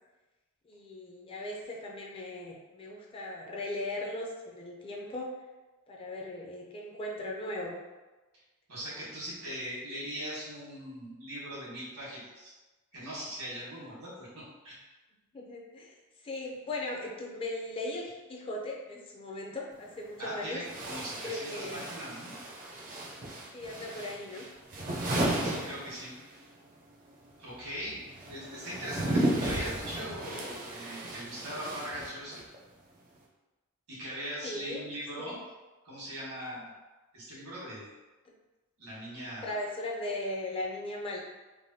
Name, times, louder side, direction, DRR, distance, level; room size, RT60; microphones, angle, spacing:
voice 1, 0.6-5.3 5.9-7.8 15.3-15.9 16.2-20.6 21.1-21.8 23.5-24.5 34.4-34.9 35.2-35.4 39.4-41.2, left 1 dB, 25° left, -1 dB, 0.4 m, -38 dB
voice 2, 8.7-12.5 12.9-14.8 20.2-22.4 25.4-26.1 27.4-28.0 28.3-32.4 33.9-35.4 35.8-36.7 37.1-37.9 38.8-39.6, equal, 80° right, -7 dB, 1.3 m, -40 dB
sound 1, 19.7-19.8 20.6-26.5 26.7-32.6, right 1 dB, 40° right, 0.5 m, -34 dB
3.3 x 2.2 x 2.6 m, 1.2 s
head